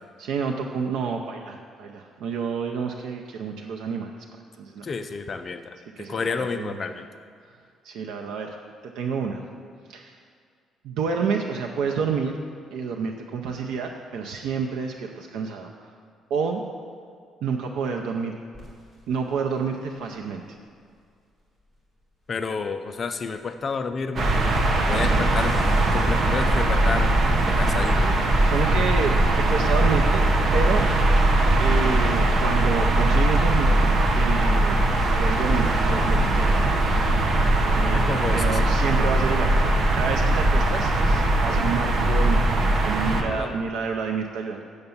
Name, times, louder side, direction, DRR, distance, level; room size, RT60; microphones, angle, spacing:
voice 1, 0.2-4.1 4.6-4.8 6.0-7.0 7.8-8.6 8.9-9.4 9.9-10.2 10.8-12.4 12.7-15.9 16.3-16.6 17.4-18.3 19.1-20.4 25.1-25.3 28.5-30.3 30.5-30.9 31.6-34.8 35.2-36.7 37.7-44.6, right 5 dB, 85° right, 2 dB, 0.6 m, -29 dB
voice 2, 4.8-5.8 6.1-7.0 22.3-24.3 24.9-25.6 25.9-27.2 27.5-28.2 37.9-38.6 43.2-43.5, left 4 dB, 30° left, 8 dB, 0.4 m, -30 dB
sound 1, 18.5-21.0 21.3-24.0 24.2-27.0 27.8-28.2, left 1 dB, 10° right, 2.2 m, -43 dB
sound 2, 24.2-43.2, right 1 dB, 35° right, 0.8 m, -20 dB
8.0 x 6.6 x 7.1 m, 2.1 s
cardioid pair, 180°, 0 cm